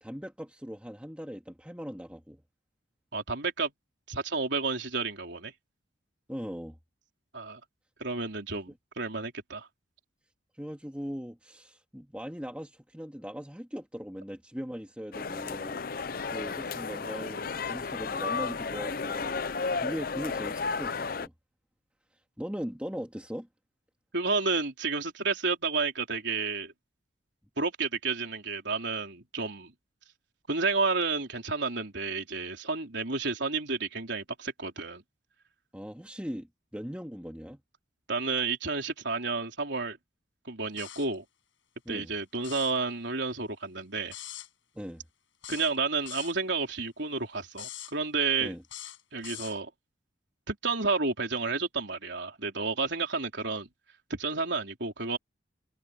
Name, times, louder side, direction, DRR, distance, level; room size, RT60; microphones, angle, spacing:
voice 1, 0.0-2.4 6.3-6.8 8.7-8.8 10.6-15.8 16.3-21.3 22.4-23.5 35.7-36.5 36.7-37.6 41.9-42.1 44.7-45.0 48.4-48.6, equal, 5° right, 2.3 m, -39 dB
voice 2, 3.1-3.7 4.1-5.5 7.3-7.6 8.0-9.7 24.1-26.7 27.6-29.7 30.5-35.0 38.1-40.0 40.5-41.2 41.9-44.1 45.5-48.5 49.1-49.7 50.5-53.7 54.1-55.2, right 4 dB, 65° right, 3.8 m, -31 dB
sound 1, 15.1-21.3, left 4 dB, 45° left, 0.6 m, -33 dB
sound 2, 40.8-41.1 42.3-42.8 44.1-44.5 45.4-46.4 47.5-47.9 48.6-49.6, left 12 dB, 80° left, 6.8 m, -43 dB
head